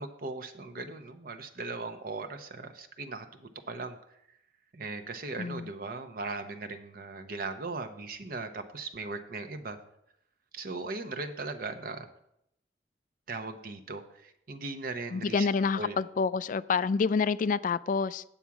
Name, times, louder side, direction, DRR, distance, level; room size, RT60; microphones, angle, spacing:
voice 1, 0.0-4.0 4.7-9.8 10.5-12.1 13.3-15.5 15.7-16.0, right 3 dB, 55° right, 0.8 m, -38 dB
voice 2, 5.4-5.7 15.1-18.2, left 5 dB, 50° left, 0.3 m, -28 dB
9.0 x 7.2 x 4.7 m
head